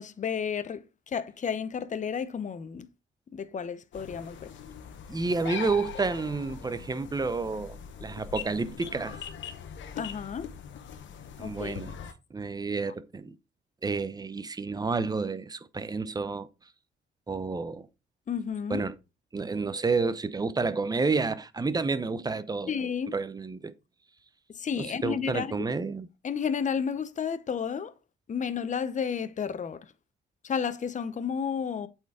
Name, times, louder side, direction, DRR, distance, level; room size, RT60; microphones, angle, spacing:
voice 1, 0.0-2.9 3.3-4.5 10.0-10.5 11.4-11.8 18.3-18.8 22.7-23.1 24.5-25.6 26.2-27.9 28.3-29.9 30.4-31.9, left 7 dB, 40° left, 0.8 m, -32 dB
sound 1, 3.9-12.1, left 8 dB, 70° left, 1.2 m, -41 dB
voice 2, 5.1-9.2 11.4-11.9 12.3-13.4 13.8-16.5 17.3-17.9 18.7-18.9 19.3-22.7 23.1-23.7 24.8-26.1, right 4 dB, 20° right, 0.8 m, -30 dB
8.1 x 4.6 x 4.9 m
cardioid pair, 90°, 20 cm